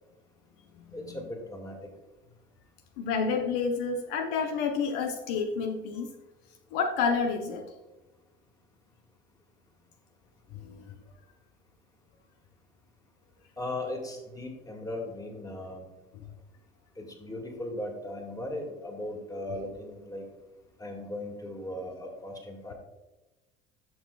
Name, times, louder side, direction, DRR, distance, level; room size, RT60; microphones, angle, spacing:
voice 1, 0.9-1.8 13.6-15.9 17.0-20.2 20.8-22.7, left 1 dB, 10° left, 2 dB, 2.2 m, -37 dB
voice 2, 3.0-6.1 6.7-7.6 10.5-10.9 16.1-16.3 19.6-19.7, left 5 dB, 70° left, 4 dB, 0.9 m, -30 dB
11.5 x 6.3 x 2.4 m, 1.1 s
hypercardioid pair, 70°, 30 cm